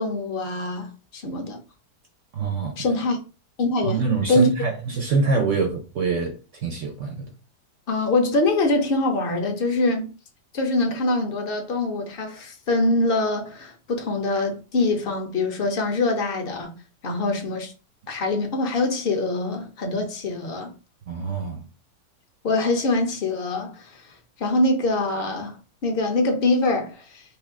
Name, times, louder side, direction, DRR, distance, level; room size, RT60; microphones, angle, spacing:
voice 1, 0.0-1.6 2.8-3.2 3.6-4.5 7.9-10.1 10.5-16.7 17.0-17.7 18.1-20.7 22.4-24.1 24.4-27.2, left 2 dB, 45° left, 0.8 m, -24 dB
voice 2, 2.3-2.8 3.8-7.3 21.1-21.7, right 4 dB, 65° right, 0.8 m, -25 dB
3.3 x 2.7 x 3.5 m
omnidirectional pair, 1.8 m